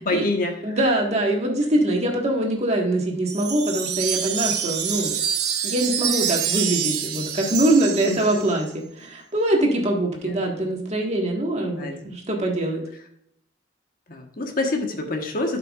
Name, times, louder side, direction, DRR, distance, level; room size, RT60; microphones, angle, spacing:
voice 1, 0.0-0.8 8.1-8.5 10.2-10.4 11.6-11.9 14.1-15.6, left 2 dB, 50° left, 3 dB, 1.3 m, -27 dB
voice 2, 0.6-5.1 5.6-12.8, right 1 dB, 40° right, 0 dB, 1.6 m, -23 dB
Wind chime, 3.3-8.6, right 8 dB, 65° right, 0.9 m, -26 dB
12.0 x 5.9 x 2.4 m, 0.72 s
head